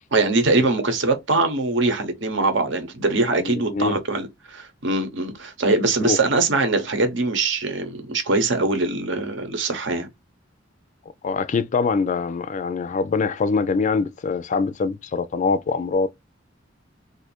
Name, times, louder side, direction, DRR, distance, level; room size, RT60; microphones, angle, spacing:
voice 1, 0.1-10.1, right 3 dB, 70° right, 0.9 m, -22 dB
voice 2, 3.4-4.0 6.0-6.2 11.2-16.1, left 4 dB, 40° left, 0.3 m, -23 dB
2.6 x 2.5 x 4.2 m
head